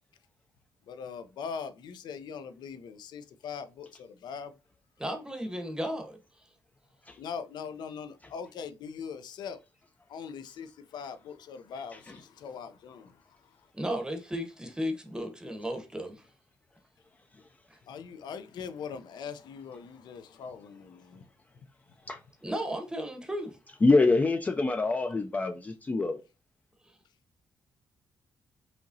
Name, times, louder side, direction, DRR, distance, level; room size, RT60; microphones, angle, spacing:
voice 1, 0.8-4.6 7.2-9.6 10.1-13.7 17.9-21.3, left 6 dB, 75° left, 0.6 m, -41 dB
voice 2, 5.0-6.2 13.7-16.2 17.7-17.8 22.4-23.6, equal, 10° right, 0.8 m, -34 dB
voice 3, 23.8-26.2, left 3 dB, 20° left, 0.4 m, -25 dB
5.0 x 3.0 x 2.6 m
cardioid pair, 140°, 8 cm